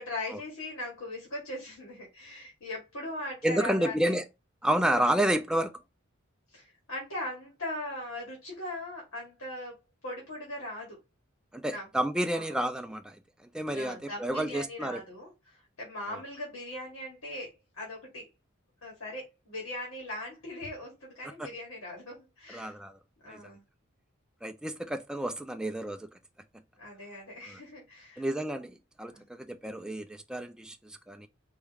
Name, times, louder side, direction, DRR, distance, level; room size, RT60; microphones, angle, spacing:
voice 1, 0.0-4.1 4.9-5.1 6.5-9.8 10.0-11.0 11.7-11.9 12.3-12.6 13.7-18.3 18.8-22.7 23.2-23.6 26.8-28.2 29.1-29.3, left 1 dB, 80° left, 2.4 m, -40 dB
voice 2, 3.4-4.2 4.6-5.7 11.5-13.2 13.5-15.0 16.1-16.2 22.5-23.0 23.3-23.4 24.4-26.1 27.5-27.6 28.2-31.3, right 1 dB, 5° right, 0.3 m, -30 dB
4.8 x 3.6 x 3.1 m
head